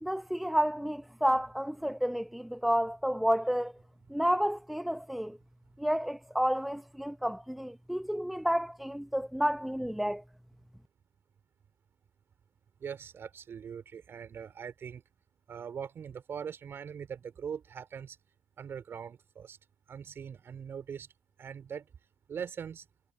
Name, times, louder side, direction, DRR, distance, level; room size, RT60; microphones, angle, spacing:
voice 1, 0.0-3.7 4.1-5.4 5.8-10.2, equal, ahead, 0.8 m, -30 dB
voice 2, 12.8-15.0 15.5-18.2 18.6-19.6 19.9-21.1 21.4-21.9 22.3-22.8, right 7 dB, 40° right, 3.9 m, -41 dB
hypercardioid pair, 65°, 6 cm